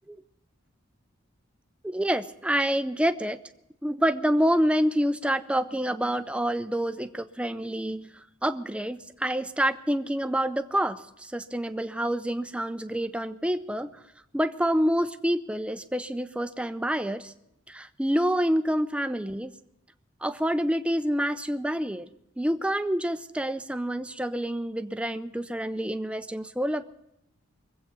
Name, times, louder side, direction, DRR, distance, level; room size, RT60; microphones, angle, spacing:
voice 1, 1.8-3.4 3.8-8.1 8.4-13.9 14.3-17.3 17.7-19.5 20.2-22.1 22.4-26.8, equal, 5° right, 10 dB, 0.5 m, -27 dB
23.0 x 8.2 x 6.0 m, 0.83 s
head